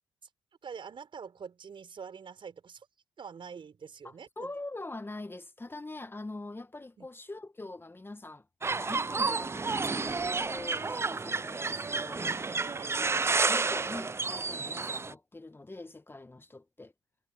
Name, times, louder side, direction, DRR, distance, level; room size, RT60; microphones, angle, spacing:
voice 1, 0.6-2.9 3.2-4.5 7.0-7.1 12.6-13.0, right 6 dB, 55° right, 6.0 m, -45 dB
voice 2, 4.0-8.4 8.7-12.3 12.9-16.9, left 2 dB, 20° left, 1.6 m, -43 dB
sound 1, 8.6-15.1, right 4 dB, 25° right, 0.5 m, -31 dB
hypercardioid pair, 45°, 10 cm